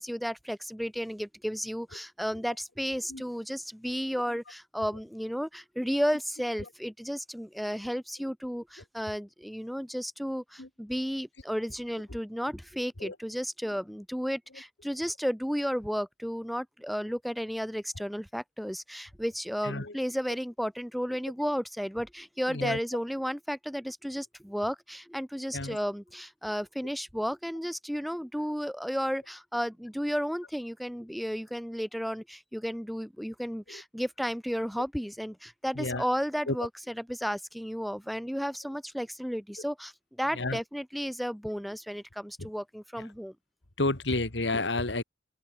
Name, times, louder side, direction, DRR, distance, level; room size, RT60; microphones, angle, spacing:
voice 1, 0.0-36.7 37.1-39.9 40.2-43.3, equal, ahead, 5.3 m, -33 dB
voice 2, 19.6-19.9 22.5-22.8 25.5-25.8 33.7-33.8 35.7-36.0 36.5-36.6 40.3-40.6 42.4-42.5 43.0-43.1 43.8-45.0, left 2 dB, 70° left, 2.4 m, -31 dB
open air
head